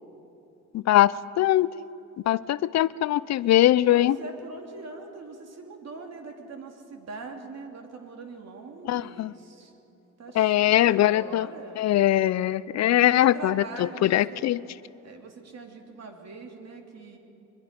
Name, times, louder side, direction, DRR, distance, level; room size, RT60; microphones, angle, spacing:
voice 1, 0.7-1.7 2.3-4.2 8.9-9.3 10.4-11.5 11.8-14.6, left 13 dB, 60° left, 18 dB, 0.5 m, -21 dB
voice 2, 3.9-9.7 10.2-11.8 12.9-14.5 15.0-17.2, right 3 dB, 60° right, 3 dB, 2.9 m, -42 dB
23.5 x 21.0 x 5.2 m, 2.9 s
cardioid pair, 90°, 30 cm